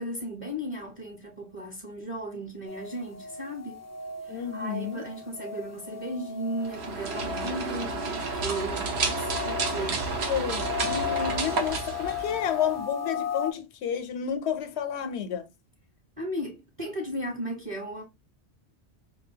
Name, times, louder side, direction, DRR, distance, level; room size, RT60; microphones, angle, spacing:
voice 1, 0.0-3.8 4.3-10.2 16.2-18.0, right 1 dB, 35° right, 0.8 m, -36 dB
sound 1, 2.7-13.5, left 9 dB, 20° left, 0.4 m, -37 dB
voice 2, 4.3-5.0 9.8-15.4, left 8 dB, 80° left, 0.9 m, -31 dB
sound 2, 6.6-12.8, right 4 dB, 75° right, 1.0 m, -31 dB
4.5 x 2.3 x 2.7 m
omnidirectional pair, 1.1 m